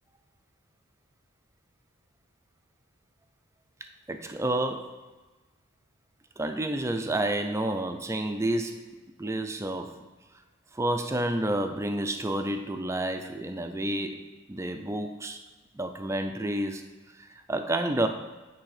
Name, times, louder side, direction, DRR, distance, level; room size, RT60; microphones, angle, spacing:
voice 1, 4.1-5.0 6.4-10.0 10.7-15.4 15.7-16.8 17.1-18.1, right 1 dB, 15° right, 6 dB, 0.4 m, -30 dB
8.8 x 3.4 x 4.8 m, 1.2 s
head